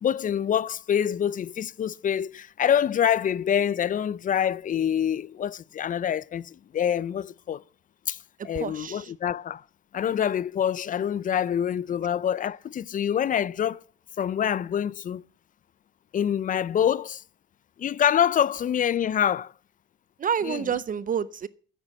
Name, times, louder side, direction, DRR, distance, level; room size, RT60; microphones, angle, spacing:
voice 1, 0.0-7.6 8.1-8.2 8.4-9.6 9.9-13.8 14.2-15.2 16.1-17.2 17.8-19.5 20.4-20.6, left 9 dB, 45° left, 0.4 m, -26 dB
voice 2, 8.5-9.1 20.2-21.5, right 8 dB, 45° right, 0.6 m, -28 dB
9.7 x 8.1 x 7.2 m
cardioid pair, 90°, 20 cm